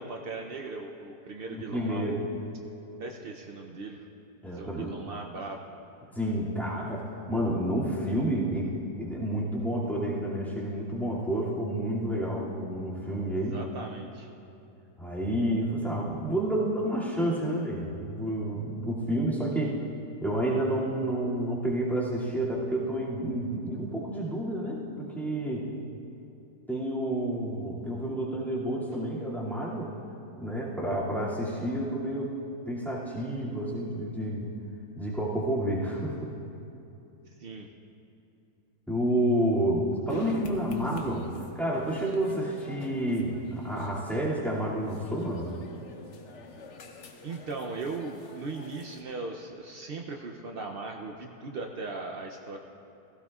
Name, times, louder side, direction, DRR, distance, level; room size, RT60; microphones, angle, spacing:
voice 1, 0.0-2.3 3.0-4.0 4.5-5.6 13.3-14.3 37.3-37.7 47.2-52.6, right 3 dB, 75° right, 2 dB, 0.5 m, -38 dB
voice 2, 1.5-2.3 4.4-4.9 6.1-8.7 9.0-13.6 15.0-19.8 20.2-25.7 26.7-29.9 30.4-32.3 32.7-34.5 35.0-36.3 38.9-41.3 41.5-45.5, right 1 dB, ahead, -8 dB, 2.1 m, -30 dB
sound 1, 40.1-49.0, left 2 dB, 50° left, 1.1 m, -46 dB
16.0 x 16.0 x 2.4 m, 2.8 s
omnidirectional pair, 1.8 m